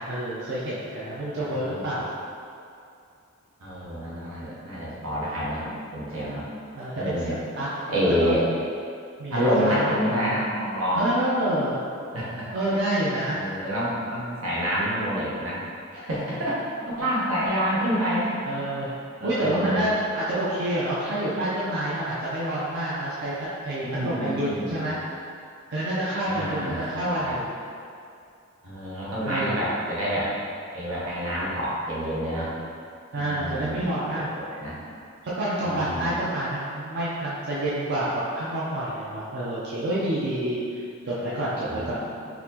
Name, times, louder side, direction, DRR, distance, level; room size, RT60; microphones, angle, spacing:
voice 1, 0.0-2.1 6.8-7.7 8.2-8.4 9.2-10.5 10.9-11.7 12.5-13.4 18.4-18.9 19.2-23.3 23.6-25.0 25.7-27.5 29.2-29.7 33.1-34.3 35.4-42.0, right 1 dB, 55° right, -8 dB, 0.5 m, -28 dB
voice 2, 1.4-2.0 3.6-6.5 6.9-7.3 7.9-8.4 9.3-11.0 12.1-12.5 13.3-15.6 15.9-18.4 18.8-18.9 19.2-19.9 23.8-24.9 26.3-26.9 27.2-27.4 28.6-30.3 30.7-32.5 33.1-33.9 34.1-34.8 35.6-36.3 41.7-42.1, equal, 85° right, -7 dB, 1.0 m, -28 dB
4.0 x 2.8 x 2.8 m, 2.4 s
head